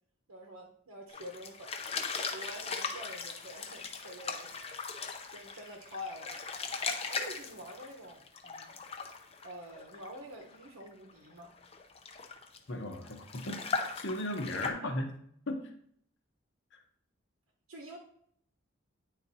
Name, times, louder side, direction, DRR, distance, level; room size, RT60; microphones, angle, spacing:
voice 1, 0.3-1.8 2.3-4.7 5.3-6.4 6.9-9.0 9.4-11.5 14.6-15.0 17.7-18.0, equal, 90° right, -1 dB, 1.0 m, -47 dB
sound 1, 1.1-14.7, left 4 dB, 30° left, 0.5 m, -39 dB
voice 2, 12.7-15.1 15.5-15.6 16.7-16.8, left 1 dB, 55° left, 4 dB, 0.9 m, -36 dB
9.3 x 4.1 x 2.7 m, 0.67 s
head